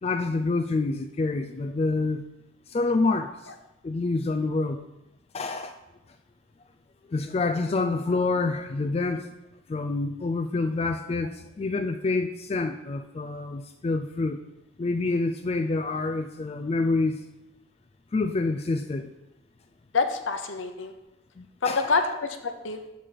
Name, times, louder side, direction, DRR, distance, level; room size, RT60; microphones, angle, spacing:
voice 1, 0.0-2.2 2.7-3.5 3.8-4.8 5.3-5.7 7.1-9.3 9.7-14.4 14.8-17.2 18.1-19.1 21.4-22.0, left 3 dB, 30° left, 6 dB, 0.3 m, -27 dB
voice 2, 19.9-20.9 21.6-22.8, left 4 dB, 75° left, 7 dB, 0.8 m, -27 dB
6.7 x 5.1 x 5.7 m, 0.98 s
head